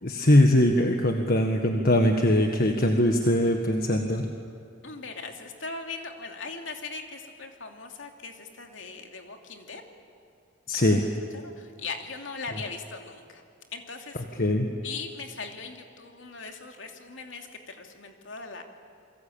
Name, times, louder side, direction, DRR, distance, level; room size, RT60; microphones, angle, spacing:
voice 1, 0.0-4.3 10.7-11.0 14.4-14.7, left 1 dB, 50° left, 4 dB, 1.6 m, -21 dB
voice 2, 4.8-9.8 10.9-11.0 11.3-13.4 13.7-14.4 14.8-18.6, left 4 dB, 70° left, 4 dB, 2.9 m, -39 dB
29.0 x 23.0 x 8.8 m, 2.5 s
head